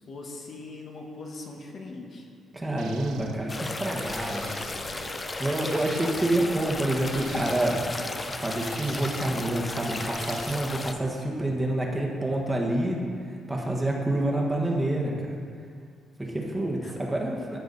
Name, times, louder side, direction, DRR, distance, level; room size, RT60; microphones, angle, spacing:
voice 1, 0.1-2.3 16.8-16.9, left 2 dB, 55° left, 0 dB, 1.3 m, -41 dB
voice 2, 2.5-4.8 5.4-7.8 8.3-13.0 13.5-15.4 16.2-17.6, right 1 dB, 15° right, -1 dB, 1.3 m, -28 dB
sound 1, 2.8-10.6, right 6 dB, 85° right, 0.6 m, -45 dB
sound 2, 3.5-10.9, left 3 dB, 25° left, 0.5 m, -34 dB
13.5 x 5.0 x 4.0 m, 2.3 s
cardioid pair, 90°, 0 cm